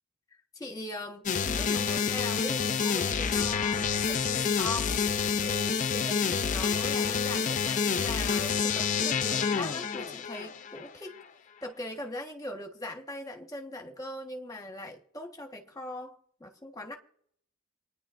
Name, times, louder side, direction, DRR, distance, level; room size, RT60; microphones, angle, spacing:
voice 1, 0.5-4.9 5.4-11.1 11.6-17.0, left 1 dB, 15° left, 1.3 m, -40 dB
sound 1, 1.3-10.9, left 6 dB, 35° left, 0.4 m, -28 dB
sound 2, 3.0-5.8, right 2 dB, 75° right, 0.8 m, -50 dB
26.5 x 9.9 x 2.5 m
head